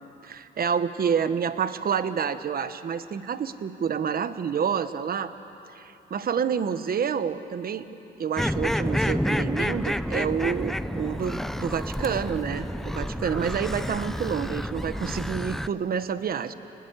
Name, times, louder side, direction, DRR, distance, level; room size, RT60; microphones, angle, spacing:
voice 1, 0.2-5.3 5.7-7.9 8.2-16.5, right 7 dB, 50° right, 11 dB, 1.1 m, -28 dB
sound 1, 8.4-15.7, equal, ahead, 0.6 m, -29 dB
29.5 x 20.0 x 8.1 m, 3.0 s
cardioid pair, 90°, 20 cm